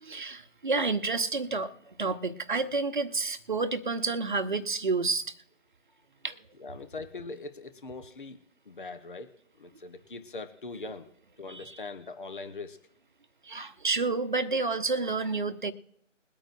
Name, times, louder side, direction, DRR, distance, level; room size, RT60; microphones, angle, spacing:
voice 1, 0.0-1.7 2.0-5.3 6.2-6.4 11.5-11.8 13.4-15.7, right 3 dB, 40° right, 9 dB, 1.0 m, -29 dB
voice 2, 6.6-8.4 8.6-9.3 9.6-11.1 11.4-12.8, left 3 dB, 40° left, 9 dB, 1.1 m, -41 dB
22.0 x 8.9 x 2.6 m, 0.74 s
figure-of-eight pair, 160°, 37 cm